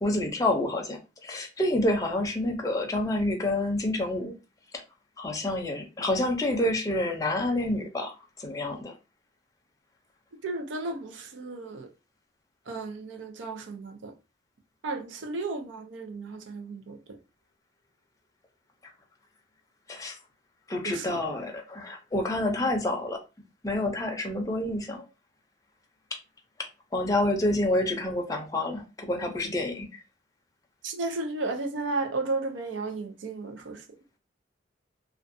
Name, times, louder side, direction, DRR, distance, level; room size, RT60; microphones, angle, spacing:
voice 1, 0.0-4.3 5.2-8.9 19.9-20.2 20.7-23.2 23.6-25.1 26.9-29.9, left 1 dB, 20° left, 0.5 m, -28 dB
voice 2, 10.4-11.9 12.7-14.1 14.8-17.2 20.8-21.2 22.6-22.7 30.8-33.8, right 3 dB, 90° right, 0.5 m, -34 dB
2.5 x 2.1 x 2.5 m
head